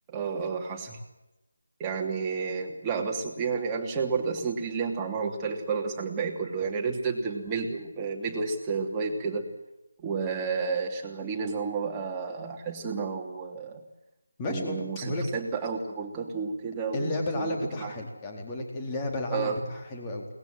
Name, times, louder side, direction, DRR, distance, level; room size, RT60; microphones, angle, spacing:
voice 1, 0.1-0.9 1.8-9.5 10.0-13.8 14.5-17.9 19.3-19.5, right 5 dB, 15° right, 0 dB, 3.0 m, -31 dB
voice 2, 14.4-15.3 16.9-20.3, left 2 dB, 15° left, 1 dB, 4.1 m, -32 dB
22.5 x 20.0 x 7.8 m, 0.95 s
figure-of-eight pair, 160°, 0 cm